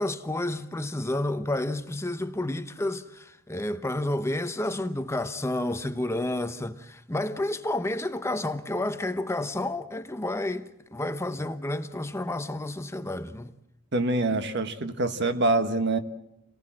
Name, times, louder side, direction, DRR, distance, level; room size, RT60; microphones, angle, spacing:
voice 1, 0.0-13.5, left 1 dB, 15° left, 0.9 m, -30 dB
voice 2, 13.9-16.0, right 2 dB, 55° right, 1.5 m, -25 dB
28.5 x 19.0 x 7.6 m
head